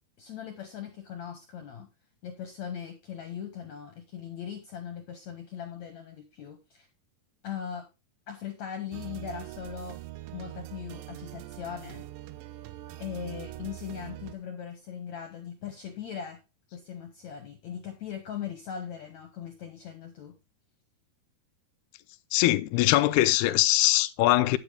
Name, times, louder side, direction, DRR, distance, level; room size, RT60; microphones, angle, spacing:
voice 1, 0.2-1.9 2.2-6.9 7.4-7.8 8.3-10.0 10.3-12.0 13.0-16.4 16.7-20.4, left 8 dB, 60° left, 2.1 m, -39 dB
sound 1, 8.9-14.3, right 15 dB, 80° right, 2.1 m, -42 dB
voice 2, 22.3-24.6, left 16 dB, 85° left, 2.6 m, -22 dB
9.5 x 8.2 x 3.4 m
omnidirectional pair, 4.6 m